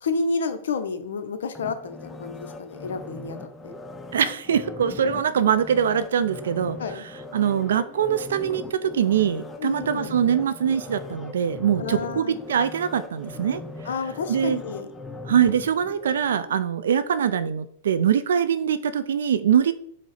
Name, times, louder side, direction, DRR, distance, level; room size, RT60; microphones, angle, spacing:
voice 1, 0.0-3.4 3.6-3.7 6.8-7.1 9.6-10.2 11.8-12.4 13.9-14.9, left 4 dB, 80° left, 10 dB, 0.5 m, -30 dB
sound 1, 1.5-16.6 17.0-17.1, left 2 dB, 15° left, 0.3 m, -40 dB
voice 2, 4.1-7.0 7.3-13.6 14.3-14.6 15.2-19.7, right 8 dB, 80° right, 14 dB, 0.3 m, -23 dB
4.7 x 2.0 x 4.0 m, 0.64 s
hypercardioid pair, 110°, 0 cm